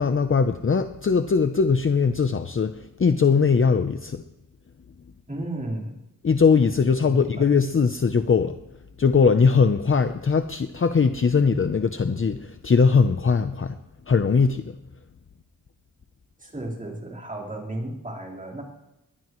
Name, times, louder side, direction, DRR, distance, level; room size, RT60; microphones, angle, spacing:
voice 1, 0.0-4.2 6.2-8.6 9.0-13.8 14.1-14.8, left 5 dB, 35° left, 8 dB, 0.7 m, -20 dB
voice 2, 5.3-6.0 7.0-7.5 16.4-18.6, right 1 dB, 20° right, -4 dB, 4.1 m, -33 dB
22.0 x 20.0 x 3.1 m, 0.93 s
wide cardioid pair, 140°, 36 cm